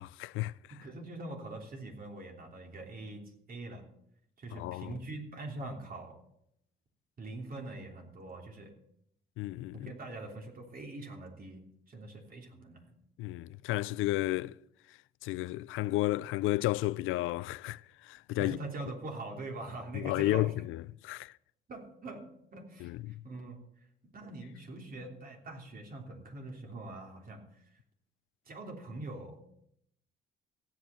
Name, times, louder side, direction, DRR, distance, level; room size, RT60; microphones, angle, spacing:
voice 1, 0.0-0.5 4.5-5.0 9.4-9.9 13.2-14.6 15.2-18.6 19.9-21.3 22.8-23.2, left 17 dB, 90° left, 0.4 m, -32 dB
voice 2, 0.7-3.9 4.4-6.2 7.2-8.7 9.7-13.0 18.4-20.5 21.7-27.7 28.4-29.4, right 2 dB, 45° right, 3.2 m, -43 dB
15.5 x 8.5 x 7.0 m
cardioid pair, 90°, 20 cm